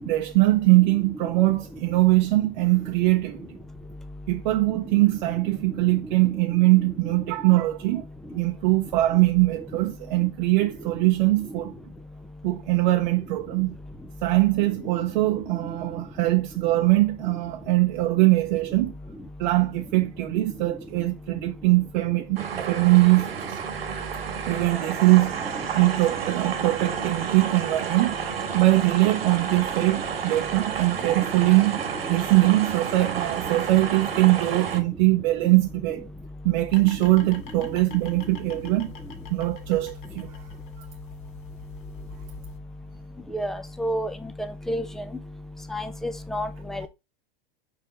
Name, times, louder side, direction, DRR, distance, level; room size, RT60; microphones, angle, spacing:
voice 1, 0.1-3.5 4.3-8.0 8.3-11.7 12.4-13.8 14.2-18.9 19.4-23.6 24.5-25.4 25.8-28.1 28.5-31.8 32.1-36.1 36.4-38.9 39.3-40.3, right 19 dB, 50° right, 0.6 m, -22 dB
Waschmaschine-Rhytmus, 22.4-34.8, right 7 dB, 90° right, 1.4 m, -31 dB
sound 1, 36.7-42.6, left 5 dB, 60° left, 1.8 m, -43 dB
voice 2, 43.3-44.1 44.7-44.8 45.7-46.9, equal, ahead, 0.3 m, -29 dB
5.2 x 4.6 x 4.1 m
hypercardioid pair, 135°, 29 cm